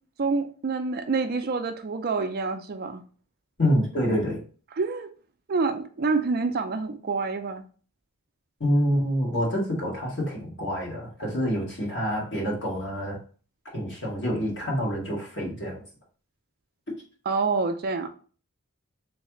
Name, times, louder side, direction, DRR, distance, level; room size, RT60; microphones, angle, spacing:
voice 1, 0.2-3.0 4.8-5.1 5.5-7.6 17.3-18.1, right 4 dB, 45° right, 0.4 m, -27 dB
voice 2, 3.6-4.4 8.6-13.2 13.7-15.8, equal, 50° left, 1.7 m, -27 dB
3.5 x 3.2 x 2.9 m
head